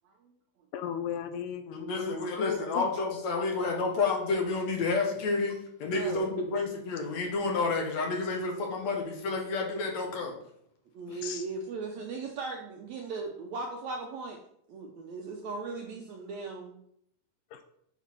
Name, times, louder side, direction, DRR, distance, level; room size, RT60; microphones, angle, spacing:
voice 1, 0.7-2.9 11.2-11.4 17.5-17.6, left 8 dB, 80° left, 9 dB, 1.9 m, -36 dB
voice 2, 1.7-10.3 11.1-11.2, left 3 dB, 65° left, 2 dB, 2.1 m, -30 dB
voice 3, 5.8-6.2 10.9-14.4 14.7-16.8, right 4 dB, 75° right, 2 dB, 1.7 m, -38 dB
7.1 x 4.0 x 5.9 m, 0.72 s
omnidirectional pair, 3.9 m